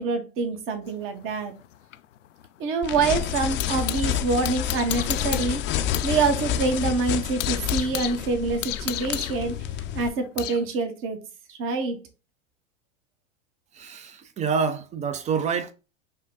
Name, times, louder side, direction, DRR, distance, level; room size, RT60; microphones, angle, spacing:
voice 1, 0.0-1.5 2.6-5.6 6.0-9.5 9.9-11.2 11.5-12.0, right 4 dB, 35° right, 1.0 m, -26 dB
sound 1, 0.9-4.1 4.4-6.2 6.5-6.6 7.0-10.6, left 13 dB, 85° left, 0.5 m, -34 dB
sound 2, 2.8-10.1, left 10 dB, 30° left, 0.6 m, -29 dB
voice 2, 13.8-15.7, right 6 dB, 20° right, 0.5 m, -27 dB
5.5 x 2.2 x 3.7 m
hypercardioid pair, 105°, 37 cm